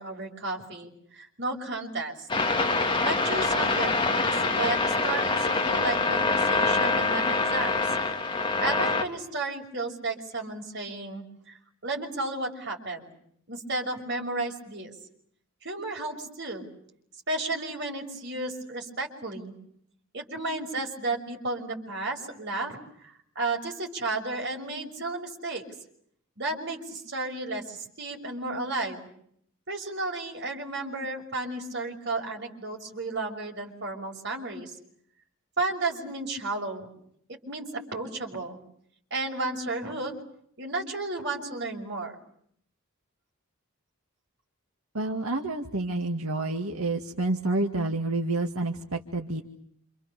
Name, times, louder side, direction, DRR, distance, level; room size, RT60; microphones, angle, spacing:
voice 1, 0.0-2.3 3.0-7.9 8.6-11.6 11.8-13.1 13.5-14.9 15.6-16.7 17.3-19.5 20.1-25.6 26.4-29.0 29.7-34.8 35.6-36.9 37.3-38.6 39.1-40.1 40.6-42.1, right 2 dB, 50° right, 1 dB, 6.0 m, -33 dB
sound 1, 2.3-9.0, left 3 dB, 20° left, 2.6 m, -25 dB
voice 2, 44.9-49.4, right 2 dB, 80° right, 2 dB, 2.1 m, -29 dB
28.5 x 28.0 x 6.8 m, 0.67 s
head